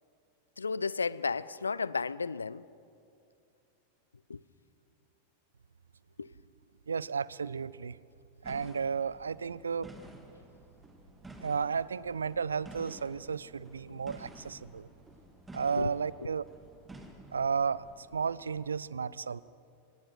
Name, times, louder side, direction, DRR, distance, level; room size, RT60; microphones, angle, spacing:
voice 1, 0.6-2.6 4.3-4.4 6.2-6.3 15.8-15.9, left 4 dB, 75° left, 20 dB, 0.5 m, -33 dB
voice 2, 6.9-8.0 8.4-9.9 11.4-14.9 15.5-16.4 17.3-19.4, right 6 dB, 70° right, 21 dB, 0.4 m, -33 dB
sound 1, 8.4-18.7, right 1 dB, 10° right, 2.0 m, -52 dB
25.5 x 19.0 x 6.1 m, 2.5 s
figure-of-eight pair, 90°, 0 cm